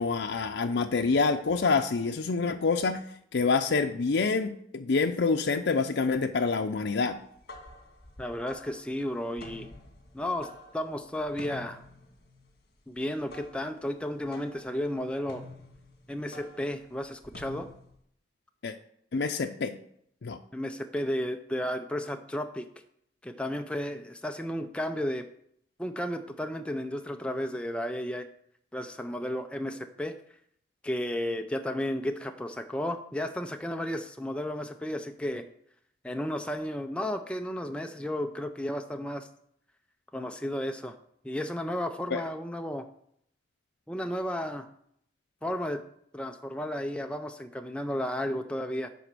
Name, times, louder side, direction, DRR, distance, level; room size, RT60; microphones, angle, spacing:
voice 1, 0.0-3.0 3.3-7.2 18.6-18.7 19.1-19.8 20.2-20.4 42.1-42.2, left 4 dB, 80° left, 4 dB, 0.5 m, -27 dB
sound 1, 7.2-18.0, left 1 dB, 60° left, 1.7 m, -49 dB
voice 2, 8.2-9.7 10.1-10.5 10.7-11.8 12.9-15.4 16.1-17.7 20.5-22.7 23.2-25.3 25.8-28.3 28.7-30.1 30.8-35.4 36.0-39.3 40.1-41.0 41.2-42.9 43.9-44.7 45.4-45.8 46.1-48.9, left 1 dB, 5° left, 5 dB, 0.4 m, -33 dB
11.0 x 4.3 x 6.8 m, 0.69 s
head